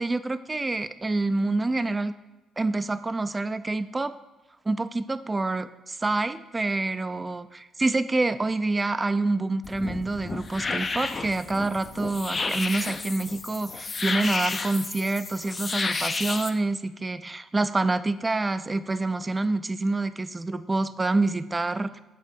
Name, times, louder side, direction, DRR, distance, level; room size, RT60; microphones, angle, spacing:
voice 1, 0.0-2.1 2.6-4.1 4.7-22.0, right 2 dB, 25° right, 13 dB, 0.4 m, -27 dB
sound 1, 9.6-16.5, left 4 dB, 40° left, 0.5 m, -31 dB
7.6 x 2.7 x 5.2 m, 1.1 s
supercardioid pair, 60°, 0 cm